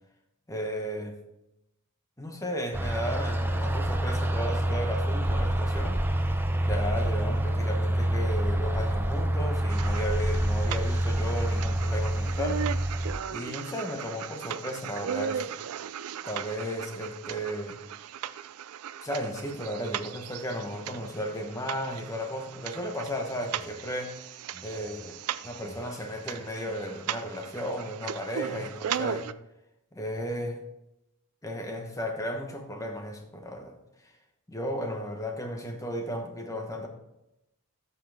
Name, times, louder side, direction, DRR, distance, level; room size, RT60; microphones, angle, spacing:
voice 1, 0.5-1.2 2.2-6.3 6.6-12.6 13.3-15.5 16.2-17.8 19.0-24.2 24.5-29.3 29.9-30.6 31.4-33.7 34.0-34.1 34.5-36.9, equal, 15° left, 3 dB, 1.1 m, -34 dB
sound 1, 2.7-13.1, right 1 dB, 10° right, 0.5 m, -27 dB
sound 2, 9.7-29.3, right 9 dB, 80° right, 0.4 m, -38 dB
13.0 x 5.7 x 3.5 m, 0.90 s
head